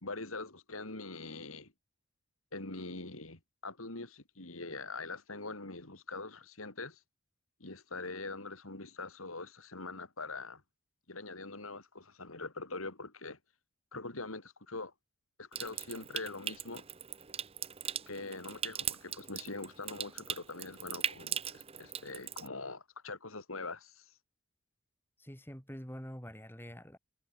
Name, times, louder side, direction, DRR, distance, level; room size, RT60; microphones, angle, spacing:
voice 1, 0.0-1.7 2.5-7.0 7.6-10.6 11.1-13.4 13.9-14.9 15.4-16.9 18.1-24.1, left 3 dB, 85° left, 3.9 m, -43 dB
Water tap faucet / Sink (filling or washing) / Trickle dribble, 15.5-22.5, right 8 dB, 30° right, 0.9 m, -40 dB
voice 2, 25.2-27.0, equal, 10° left, 5.0 m, -46 dB
head